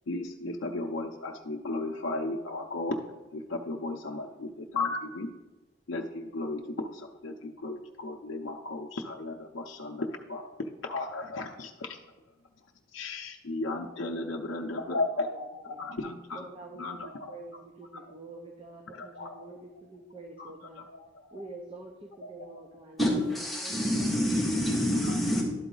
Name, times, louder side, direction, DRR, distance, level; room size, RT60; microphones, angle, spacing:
voice 1, 0.1-3.0 3.3-5.3 5.9-10.5 10.8-12.0 12.9-16.5 16.7-17.4 17.9-18.0 18.9-19.5 20.4-21.5 22.2-22.6, left 2 dB, 75° left, 1 dB, 0.5 m, -35 dB
voice 2, 14.3-14.9 15.7-15.8 16.3-20.8 21.3-23.0 23.6-24.3, right 2 dB, 30° right, 1 dB, 0.7 m, -47 dB
voice 3, 23.0-25.4, equal, ahead, -6 dB, 1.7 m, -27 dB
11.5 x 4.0 x 3.8 m, 1.1 s
head